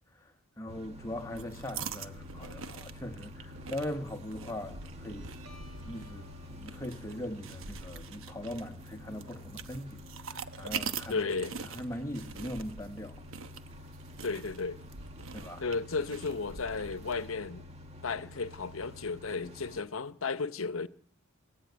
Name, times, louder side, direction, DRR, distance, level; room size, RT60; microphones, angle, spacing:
voice 1, 0.1-5.3 5.8-11.2 11.6-13.2 15.3-15.7, left 1 dB, 15° left, 1.3 m, -40 dB
sound 1, 0.7-19.8, left 1 dB, 30° right, 2.1 m, -49 dB
sound 2, 1.2-17.3, right 6 dB, 70° right, 1.1 m, -44 dB
Guitar, 4.7-11.7, right 2 dB, 90° right, 5.5 m, -60 dB
voice 2, 11.1-11.6 14.2-14.8 15.6-17.7 18.0-20.9, left 4 dB, 70° left, 0.9 m, -34 dB
27.5 x 15.0 x 9.4 m
head